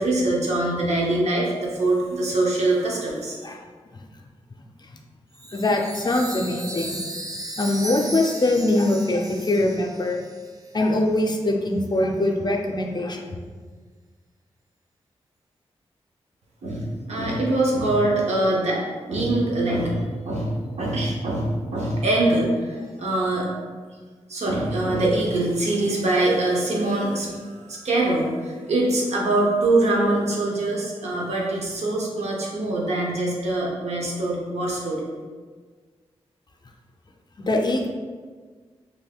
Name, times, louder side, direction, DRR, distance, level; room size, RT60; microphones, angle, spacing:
voice 1, 0.0-3.4 16.6-18.8 19.1-23.5 24.3-35.0, right 2 dB, 75° right, -3 dB, 0.7 m, -23 dB
Chime, 5.3-10.9, right 2 dB, 30° right, 0.5 m, -36 dB
voice 2, 5.5-7.0 7.6-10.2 10.7-13.4 37.5-37.9, left 2 dB, 40° left, 2 dB, 0.5 m, -22 dB
3.3 x 2.6 x 2.3 m, 1.5 s
cardioid pair, 40°, 11 cm